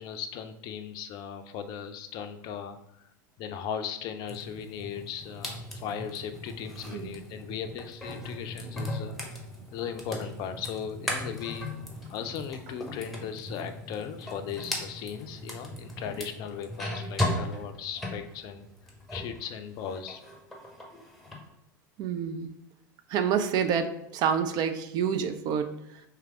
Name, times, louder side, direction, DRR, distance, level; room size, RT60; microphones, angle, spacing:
voice 1, 0.0-3.1 3.4-9.4 9.7-11.7 12.1-18.6 19.1-20.2, left 8 dB, 40° left, 9 dB, 0.5 m, -37 dB
sound 1, 4.3-19.4 19.7-21.4, left 1 dB, ahead, 1.0 m, -37 dB
voice 2, 22.0-22.5 23.1-25.8, right 7 dB, 40° right, 8 dB, 0.4 m, -28 dB
3.3 x 3.3 x 4.7 m, 0.81 s
figure-of-eight pair, 80°, 11 cm